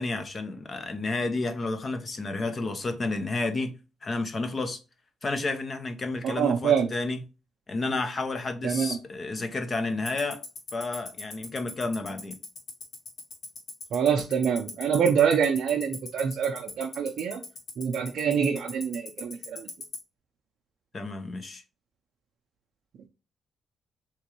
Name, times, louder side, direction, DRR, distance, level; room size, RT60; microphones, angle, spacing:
voice 1, 0.0-3.7 4.0-4.8 5.2-7.2 7.7-10.4 10.7-12.4 20.9-21.6, left 3 dB, 40° left, 0.7 m, -31 dB
voice 2, 6.2-6.9 8.6-9.0 13.9-17.4 17.8-19.7, right 7 dB, 70° right, 0.5 m, -25 dB
Tick-tock, 10.1-19.9, left 5 dB, 60° left, 1.6 m, -37 dB
3.5 x 3.0 x 2.9 m
cardioid pair, 80°, 0 cm